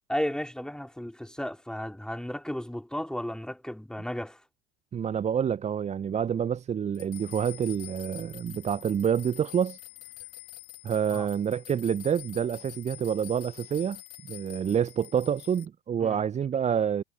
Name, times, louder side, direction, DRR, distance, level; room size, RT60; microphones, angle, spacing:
voice 1, 0.1-4.4 11.1-11.3 16.0-16.2, equal, ahead, 3.9 m, -34 dB
voice 2, 4.9-9.8 10.8-14.0 14.3-17.0, right 8 dB, 20° right, 0.7 m, -27 dB
sound 1, 6.9-15.7, left 21 dB, 50° left, 1.8 m, -46 dB
figure-of-eight pair, 75°, 31 cm